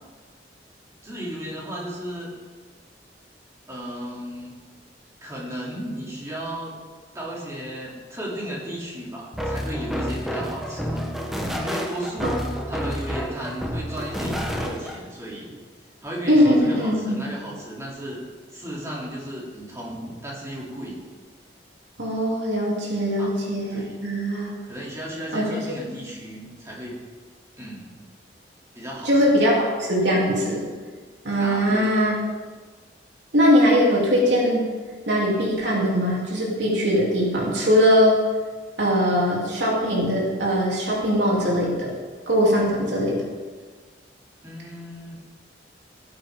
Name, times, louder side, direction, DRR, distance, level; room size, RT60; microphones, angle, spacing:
voice 1, 1.0-2.3 3.7-4.6 5.2-6.8 7.1-12.4 12.7-15.6 16.0-18.2 18.5-21.0 23.2-23.4 23.7-24.0 24.6-27.0 27.6-27.9 28.7-29.1 31.2-31.9 44.4-45.2, equal, 15° right, -5 dB, 3.2 m, -35 dB
sound 1, 9.3-15.0, equal, ahead, 1.1 m, -29 dB
voice 2, 16.3-17.2 22.0-24.5 25.3-25.6 29.0-30.6 31.2-32.2 33.3-34.6 35.1-38.2 38.8-41.9 42.3-43.2, equal, 80° right, -4 dB, 3.3 m, -21 dB
17.5 x 8.7 x 3.8 m, 1.5 s
head